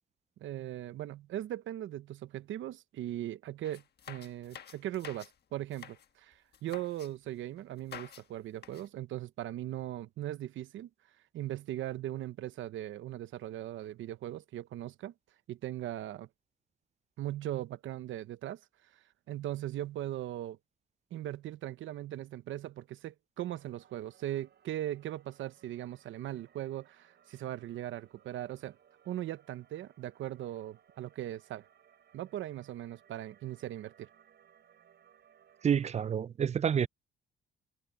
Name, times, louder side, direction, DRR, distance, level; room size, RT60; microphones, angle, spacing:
voice 1, 0.4-10.9 11.3-15.1 15.5-16.3 17.2-18.6 19.3-20.6 21.1-28.8 29.0-31.6 32.1-34.1, right 13 dB, 75° right, 0.9 m, -39 dB
sound 1, 3.6-5.3 5.6-6.1 6.5-7.1 7.8-8.3 8.5-8.9, left 8 dB, 55° left, 1.4 m, -49 dB
sound 2, 23.4-36.1, right 9 dB, 60° right, 6.8 m, -65 dB
voice 2, 35.6-36.9, right 8 dB, 35° right, 0.4 m, -28 dB
cardioid pair, 90°, 20 cm